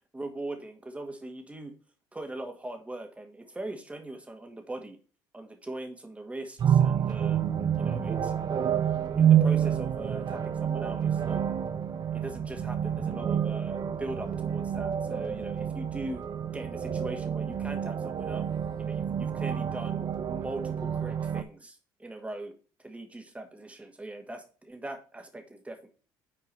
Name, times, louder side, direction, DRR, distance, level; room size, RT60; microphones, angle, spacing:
voice 1, 0.1-1.7 2.1-5.0 5.3-7.4 7.8-8.8 9.1-11.4 12.1-16.2 16.5-18.5 18.8-22.5 22.8-25.9, right 2 dB, 15° right, 5 dB, 1.9 m, -40 dB
sound 1, 6.6-21.4, right 9 dB, 45° right, 0.7 m, -28 dB
6.2 x 4.6 x 5.6 m, 0.38 s
supercardioid pair, 70°, 10 cm